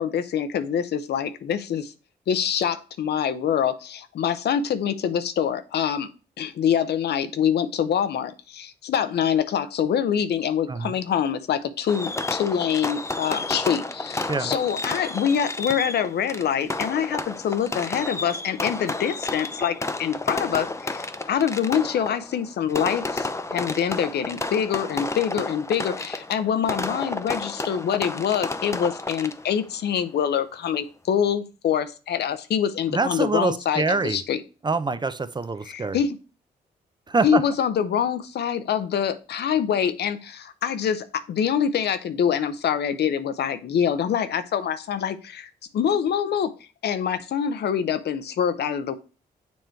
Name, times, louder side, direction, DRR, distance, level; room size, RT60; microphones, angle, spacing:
voice 1, 0.0-1.9 2.3-6.1 6.4-34.4 35.7-36.2 37.2-46.5 46.8-48.9, left 8 dB, 75° left, 11 dB, 0.7 m, -25 dB
Fireworks, 11.9-29.6, left 2 dB, 15° left, 0.6 m, -31 dB
voice 2, 32.9-34.2 34.6-36.0 37.1-37.4, right 3 dB, 25° right, 12 dB, 0.5 m, -25 dB
7.1 x 3.1 x 4.5 m, 0.33 s
supercardioid pair, 60°, 17 cm